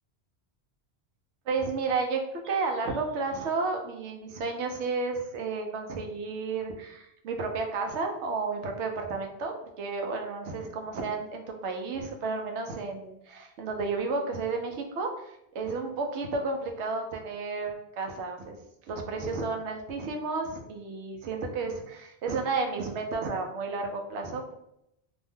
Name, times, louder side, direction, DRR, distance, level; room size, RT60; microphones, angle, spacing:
voice 1, 1.5-18.6 18.9-24.5, right 4 dB, 90° right, 4 dB, 0.9 m, -32 dB
2.6 x 2.1 x 3.4 m, 0.82 s
omnidirectional pair, 1.1 m